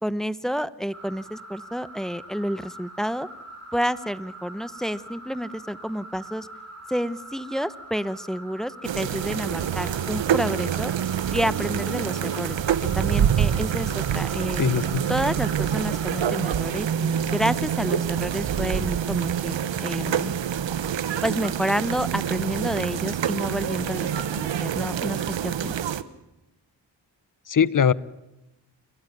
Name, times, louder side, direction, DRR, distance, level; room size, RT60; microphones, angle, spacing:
voice 1, 0.0-3.3 3.7-6.5 6.9-10.9 11.3-12.6 12.9-14.6 15.1-20.3 21.2-25.8, equal, ahead, 16 dB, 1.0 m, -29 dB
sound 1, 0.9-16.3, right 1 dB, 35° right, 7.6 m, -43 dB
sound 2, 8.8-26.0, right 9 dB, 80° right, 1.1 m, -26 dB
voice 2, 14.6-15.1 27.5-27.9, left 7 dB, 45° left, 19 dB, 0.9 m, -21 dB
29.0 x 15.0 x 9.4 m, 0.97 s
cardioid pair, 45°, 44 cm